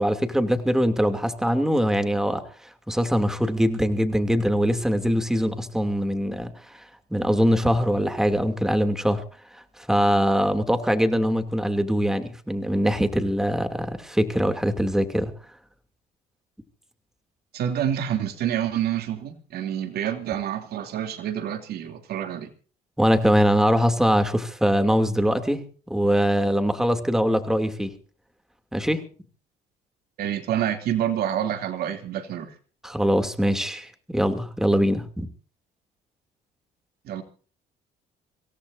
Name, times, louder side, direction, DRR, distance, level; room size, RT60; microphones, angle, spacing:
voice 1, 0.0-6.8 7.1-9.2 9.8-15.3 23.0-25.6 25.9-27.9 28.7-29.0 32.8-35.3, equal, 5° right, 2.8 m, -22 dB
voice 2, 17.5-22.5 30.2-32.5 37.0-37.2, right 10 dB, 70° right, 3.0 m, -27 dB
26.0 x 18.0 x 2.7 m
cardioid pair, 110°, 17 cm